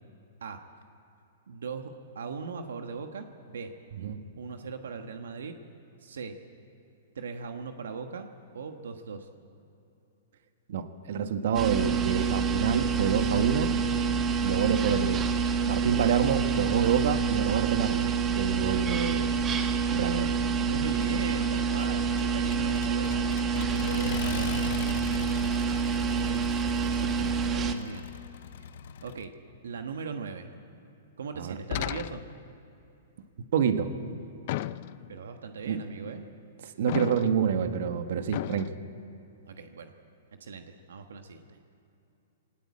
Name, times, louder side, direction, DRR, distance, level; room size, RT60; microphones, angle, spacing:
voice 1, 1.5-3.7 4.4-5.6 6.0-6.3 7.1-8.3 8.5-9.3 20.6-25.7 26.1-26.5 27.4-28.0 29.0-29.3 29.6-30.5 31.2-32.2 35.1-36.2 39.5-39.9 40.4-41.6, right 5 dB, 85° right, 6 dB, 1.3 m, -39 dB
voice 2, 10.7-13.7 14.0-14.1 14.4-15.2 15.7-19.3 19.9-20.3 27.0-27.4 31.4-31.6 33.5-33.9 35.7-35.8 36.6-38.7, right 7 dB, 65° right, 8 dB, 1.4 m, -28 dB
sound 1, 11.5-27.7, right 5 dB, 25° right, 1.4 m, -27 dB
Accelerating revving vroom, 21.0-29.3, left 9 dB, 70° left, 0.9 m, -41 dB
sound 2, 31.7-32.5 34.5-35.2 36.9-37.5 38.3-38.7, left 15 dB, 50° left, 0.5 m, -34 dB
20.0 x 18.5 x 8.6 m, 2.9 s
hypercardioid pair, 140°, 0 cm